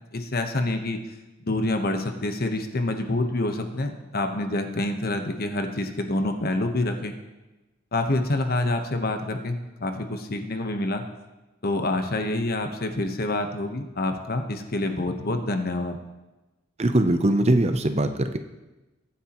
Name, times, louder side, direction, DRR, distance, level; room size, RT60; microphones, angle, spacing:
voice 1, 0.1-1.0 1.4-7.1 7.9-11.0 11.6-16.0, left 2 dB, 50° left, 6 dB, 1.2 m, -27 dB
voice 2, 16.8-18.4, right 1 dB, 35° right, 9 dB, 0.7 m, -21 dB
22.5 x 9.1 x 3.1 m, 1.1 s
head